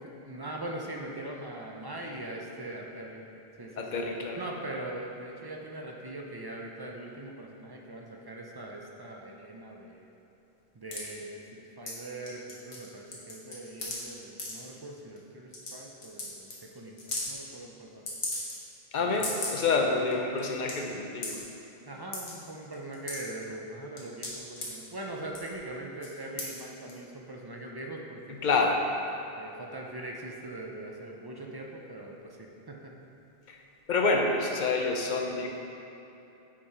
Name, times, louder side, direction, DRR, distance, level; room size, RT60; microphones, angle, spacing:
voice 1, 0.0-3.3 3.6-4.0 4.4-10.1 10.7-18.2 19.0-19.3 19.6-19.9 21.9-28.4 29.4-32.9, right 1 dB, 35° right, 0 dB, 0.4 m, -41 dB
voice 2, 3.8-4.4 18.9-21.4 28.4-28.8 33.5-33.6 33.9-35.5, left 3 dB, 55° left, 2 dB, 0.7 m, -27 dB
sound 1, 10.9-11.0 11.9-12.0 12.3-12.9 13.1-14.0 14.4-14.5 15.2-15.3 15.5-15.7 16.0-16.3 16.5-16.6 17.0-17.3 18.1-18.7 19.1-19.6 20.1-20.2 20.4-20.7 21.2-21.4 22.1-22.3 22.7-23.4 24.0-24.7 25.3-25.6 26.0-26.1 26.4-26.6 26.9-27.0, left 2 dB, 70° left, 1.4 m, -35 dB
5.8 x 4.6 x 4.8 m, 3.0 s
omnidirectional pair, 1.1 m